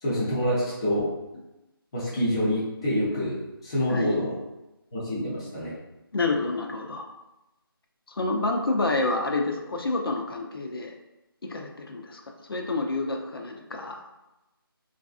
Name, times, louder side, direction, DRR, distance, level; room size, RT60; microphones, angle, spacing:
voice 1, 0.0-1.1 1.9-4.3 4.9-5.7, equal, 15° left, -9 dB, 0.5 m, -26 dB
voice 2, 6.1-7.1 8.2-10.9 11.4-12.2 12.5-14.0, left 3 dB, 70° left, 2 dB, 0.5 m, -28 dB
3.2 x 2.5 x 2.3 m, 0.96 s
figure-of-eight pair, 165°, 13 cm